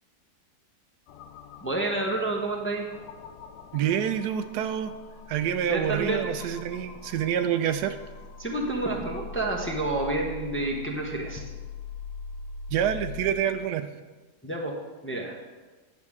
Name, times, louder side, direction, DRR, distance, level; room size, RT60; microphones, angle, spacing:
sound 1, 1.1-13.3, left 4 dB, 85° left, 1.2 m, -42 dB
voice 1, 1.6-2.9 5.7-6.3 8.4-11.4 14.4-14.7 15.0-15.4, right 2 dB, 10° left, -1 dB, 0.6 m, -29 dB
voice 2, 3.7-4.9 5.3-8.0 12.7-13.9, right 9 dB, 90° right, 10 dB, 1.2 m, -27 dB
9.4 x 7.1 x 3.6 m, 1.3 s
omnidirectional pair, 1.7 m